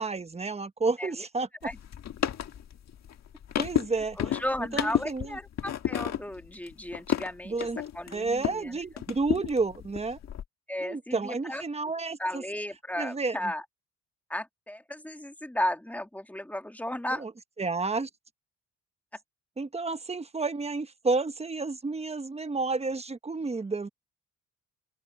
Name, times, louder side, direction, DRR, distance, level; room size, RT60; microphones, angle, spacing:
voice 1, 0.0-1.5 3.6-4.2 4.7-5.4 7.4-7.8 8.1-10.2 10.8-12.4 13.0-13.5 17.2-17.3 17.6-18.1 19.6-23.9, right 3 dB, 20° right, 1.2 m, -31 dB
sound 1, 1.6-8.7 9.0-10.4, left 10 dB, 60° left, 1.6 m, -32 dB
voice 2, 4.2-7.7 7.9-8.8 10.7-11.6 12.2-13.6 14.3-17.2, left 1 dB, 5° left, 1.8 m, -34 dB
cardioid pair, 90°, 30 cm